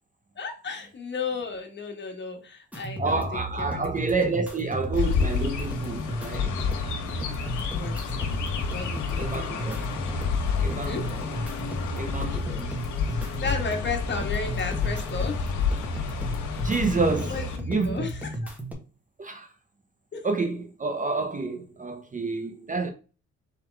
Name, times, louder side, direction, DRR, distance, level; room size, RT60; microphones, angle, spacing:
voice 1, 0.3-4.1 7.7-8.0 8.7-9.5 10.8-11.1 12.1-12.8 13.0-15.6 17.3-18.5 20.1-20.2, left 4 dB, 35° left, 1.5 m, -34 dB
sound 1, 2.7-18.7, right 1 dB, 5° right, 1.3 m, -34 dB
voice 2, 3.0-6.5 9.2-9.8 10.6-11.2 12.0-12.7 16.6-17.4 17.7-18.1 19.2-19.5 20.2-22.9, right 3 dB, 25° right, 0.7 m, -29 dB
Chirp tweet, 4.9-17.6, left 6 dB, 75° left, 1.3 m, -30 dB
4.4 x 3.6 x 3.4 m
cardioid pair, 90°, 30 cm